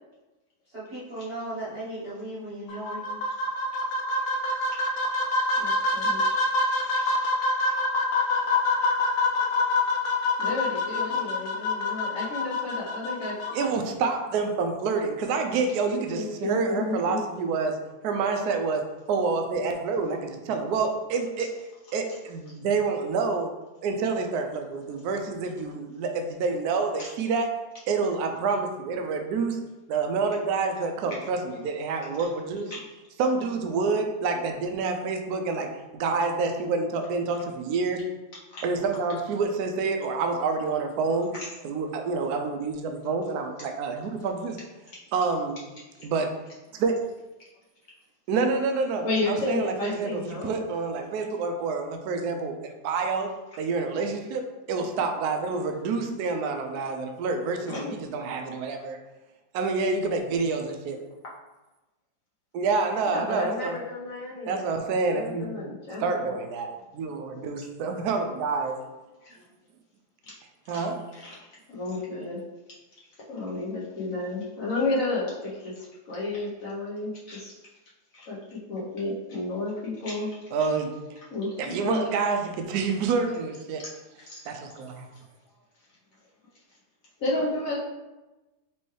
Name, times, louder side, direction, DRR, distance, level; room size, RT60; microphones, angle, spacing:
voice 1, 0.6-3.1 8.2-8.3, right 1 dB, 35° right, -11 dB, 1.1 m, -36 dB
sound 1, 2.7-13.7, left 2 dB, 80° left, 0.8 m, -26 dB
voice 2, 5.6-6.2 6.8-7.1 7.5-7.7 10.4-13.5 16.1-17.2 27.0-27.1 32.7-32.8 38.5-38.6 41.4-41.5 45.9-46.1 49.0-50.6 57.7-57.9 63.0-64.8 65.0-66.3 69.2-69.4 70.2-70.3 70.7-70.8 71.2-71.4 71.7-72.4 73.3-77.5 78.1-80.3 81.3-81.5 81.8-82.0 84.3-84.4 87.2-87.8, left 2 dB, 55° left, -6 dB, 1.1 m, -32 dB
voice 3, 13.5-17.8 18.0-18.8 19.1-21.5 21.9-23.5 23.8-27.5 27.9-29.6 29.9-32.8 33.2-38.0 38.6-41.4 41.6-44.6 45.1-45.6 46.0-46.4 46.7-46.9 48.3-53.3 53.6-59.0 59.5-61.0 62.5-63.8 64.5-65.6 66.0-68.8 70.7-71.0 80.5-80.9 81.6-83.8 84.5-85.1, right 4 dB, 70° right, 4 dB, 0.9 m, -28 dB
4.5 x 3.0 x 3.1 m, 1.1 s
omnidirectional pair, 2.1 m